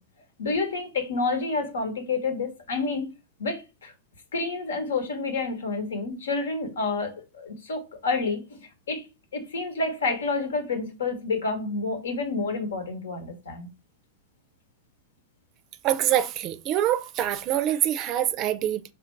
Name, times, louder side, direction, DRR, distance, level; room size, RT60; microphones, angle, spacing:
voice 1, 0.4-3.1 3.4-3.9 4.3-9.1 9.3-13.7, left 3 dB, 90° left, 1.2 m, -29 dB
voice 2, 15.8-18.8, right 12 dB, 40° right, 0.4 m, -25 dB
3.3 x 2.5 x 4.5 m
hypercardioid pair, 120°, 0 cm